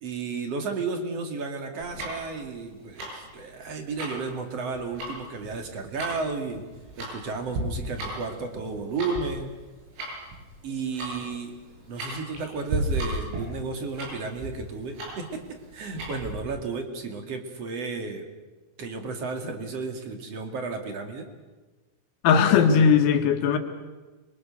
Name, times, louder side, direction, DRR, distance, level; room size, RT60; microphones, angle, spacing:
voice 1, 0.0-6.6 7.0-9.6 10.6-11.6 11.9-18.3 18.8-21.3, right 4 dB, 40° right, 5 dB, 2.5 m, -33 dB
Tick-tock, 1.8-16.4, right 1 dB, 75° right, 10.0 m, -35 dB
voice 2, 22.2-23.6, left 6 dB, 85° left, 5 dB, 4.7 m, -18 dB
28.5 x 23.5 x 6.7 m, 1.3 s
omnidirectional pair, 5.9 m